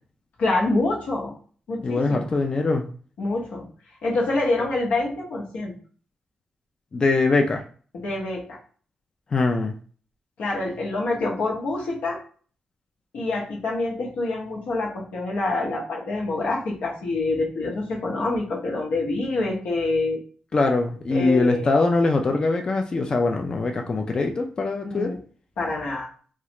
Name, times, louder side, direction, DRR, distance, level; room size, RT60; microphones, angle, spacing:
voice 1, 0.4-1.3 1.7-2.3 3.2-3.7 4.0-5.7 7.9-8.6 10.4-12.2 13.1-20.2 21.1-21.7 24.8-25.2 25.6-26.1, left 2 dB, 90° left, -3 dB, 1.0 m, -26 dB
voice 2, 1.8-2.8 6.9-7.6 9.3-9.7 20.5-25.1, left 3 dB, 35° left, 3 dB, 0.3 m, -22 dB
3.0 x 2.4 x 2.9 m, 0.43 s
cardioid pair, 120°, 2 cm